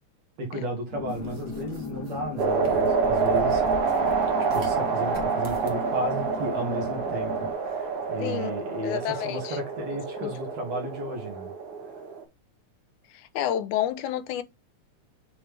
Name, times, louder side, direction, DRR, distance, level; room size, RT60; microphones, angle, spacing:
voice 1, 0.4-3.6 4.5-11.5 11.8-11.9, right 1 dB, 60° right, 3.3 m, -34 dB
sound 1, 0.9-7.5, left 4 dB, 40° left, 1.8 m, -37 dB
sound 2, 1.1-4.8 5.1-5.8, right 1 dB, 40° right, 1.5 m, -43 dB
sound 3, 2.4-12.2, right 5 dB, 80° right, 3.3 m, -27 dB
voice 2, 8.2-8.5 8.8-9.6 10.2-10.3 13.1-14.4, left 11 dB, 90° left, 2.3 m, -29 dB
7.4 x 4.3 x 3.4 m
omnidirectional pair, 3.3 m